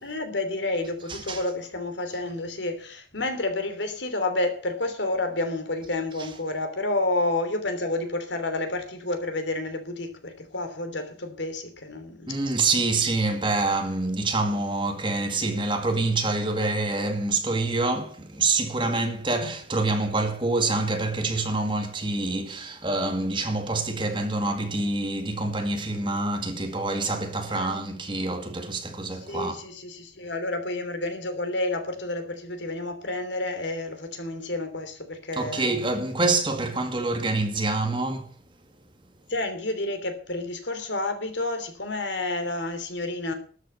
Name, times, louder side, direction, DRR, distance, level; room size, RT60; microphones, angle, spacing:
voice 1, 0.0-12.3 27.5-27.7 29.1-35.7 39.3-43.3, left 2 dB, 75° left, 3.1 m, -30 dB
voice 2, 1.1-1.4 12.3-29.6 35.4-38.3, right 2 dB, 25° right, 2.0 m, -26 dB
13.0 x 7.9 x 8.1 m
head